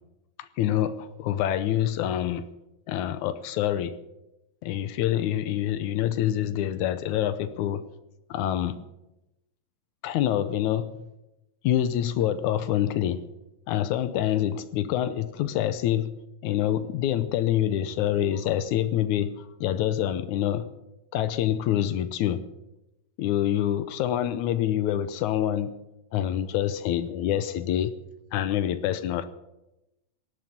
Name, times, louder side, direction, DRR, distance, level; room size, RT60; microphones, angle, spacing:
voice 1, 0.4-2.5 2.9-4.0 4.6-7.9 8.3-8.9 10.0-11.1 11.6-13.2 13.7-20.7 21.1-22.4 23.2-25.8 26.1-27.9 28.3-29.3, left 11 dB, 85° left, 2.2 m, -26 dB
17.5 x 8.4 x 9.1 m
omnidirectional pair, 3.4 m